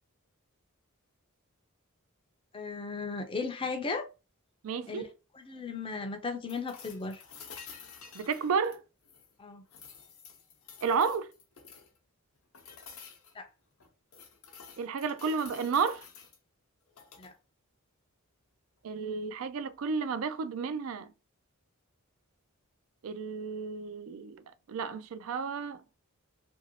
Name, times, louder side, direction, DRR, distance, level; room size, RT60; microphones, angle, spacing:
voice 1, 2.5-4.1 4.9-5.0 5.3-7.2 9.4-9.6 13.3-13.5 17.2-17.3, left 4 dB, 25° left, 0.5 m, -36 dB
voice 2, 4.6-5.1 8.1-8.8 10.8-11.3 14.8-16.0 18.8-21.1 23.0-24.4 24.7-25.8, right 5 dB, 70° right, 0.4 m, -32 dB
sound 1, 6.5-9.3 9.7-12.0 12.5-13.3 13.8-16.4 16.9-17.3 19.4-19.5, left 6 dB, 75° left, 0.7 m, -51 dB
2.9 x 2.6 x 2.8 m
head